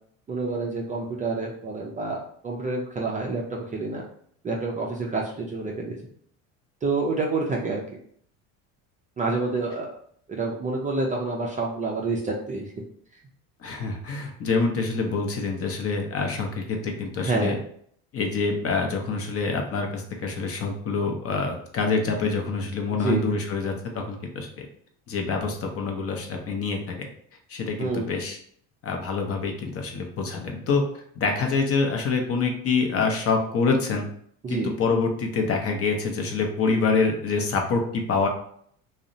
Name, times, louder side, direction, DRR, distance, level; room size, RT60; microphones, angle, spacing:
voice 1, 0.3-4.0 4.4-6.1 6.8-8.0 9.2-9.9 10.3-12.7 17.2-17.6 23.0-23.3 27.8-28.1 34.4-34.7, right 3 dB, 20° right, -2 dB, 0.3 m, -28 dB
voice 2, 13.6-17.6 18.1-24.7 25.1-27.1 27.5-28.4 28.8-30.8 31.2-34.1 34.5-38.3, left 4 dB, 40° left, 2 dB, 0.6 m, -26 dB
2.7 x 2.0 x 2.5 m, 0.62 s
supercardioid pair, 100°, 38 cm